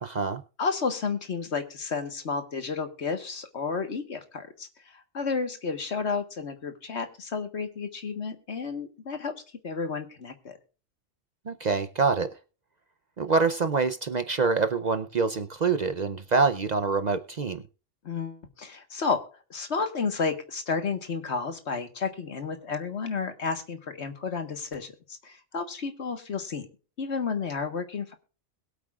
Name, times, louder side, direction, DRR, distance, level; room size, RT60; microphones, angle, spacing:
voice 1, 0.0-0.4 11.5-12.3 13.2-17.6, right 4 dB, 45° right, 9 dB, 0.6 m, -25 dB
voice 2, 0.6-9.3 9.6-10.6 18.0-19.2 19.5-26.7 27.0-28.1, left 5 dB, 70° left, 7 dB, 1.7 m, -31 dB
21.5 x 8.3 x 2.4 m, 0.36 s
omnidirectional pair, 1.2 m